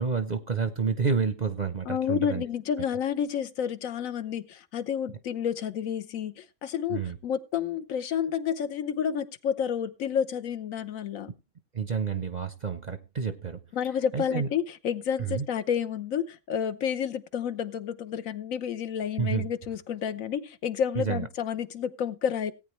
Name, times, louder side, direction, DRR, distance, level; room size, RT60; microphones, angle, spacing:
voice 1, 0.0-2.4 6.9-7.2 11.7-13.6 14.1-14.5 15.2-15.5 19.2-19.5 20.9-21.3, right 6 dB, 40° right, 10 dB, 0.6 m, -29 dB
voice 2, 1.9-11.3 13.7-22.5, left 8 dB, 75° left, 12 dB, 1.2 m, -30 dB
17.5 x 8.8 x 3.1 m, 0.26 s
omnidirectional pair, 1.4 m